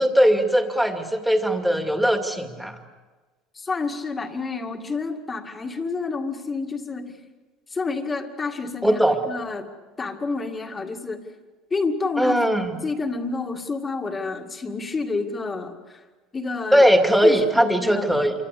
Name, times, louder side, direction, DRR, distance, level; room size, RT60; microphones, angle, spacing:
voice 1, 0.0-2.7 8.8-9.2 12.2-12.8 16.7-18.3, equal, ahead, 5 dB, 2.3 m, -19 dB
voice 2, 3.6-7.2 7.7-9.0 9.3-9.7 10.0-11.2 11.7-12.3 12.8-16.0 16.3-16.9 17.2-18.3, left 4 dB, 15° left, 5 dB, 2.1 m, -29 dB
28.0 x 24.5 x 8.5 m, 1.3 s
cardioid pair, 160°, 0 cm